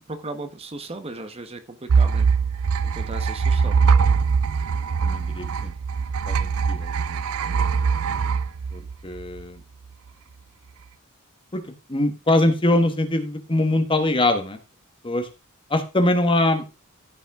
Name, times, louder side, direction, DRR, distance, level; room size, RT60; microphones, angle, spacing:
voice 1, 0.1-2.3 2.8-3.8, right 2 dB, 25° right, 7 dB, 1.0 m, -36 dB
sound 1, 1.9-9.4, right 5 dB, 70° right, 0.5 m, -22 dB
voice 2, 5.0-5.7 6.3-7.2 8.7-9.6 11.5-11.6 11.9-14.6 15.0-15.3 15.7-16.6, left 1 dB, 25° left, 6 dB, 1.4 m, -23 dB
14.5 x 5.4 x 3.6 m, 0.28 s
head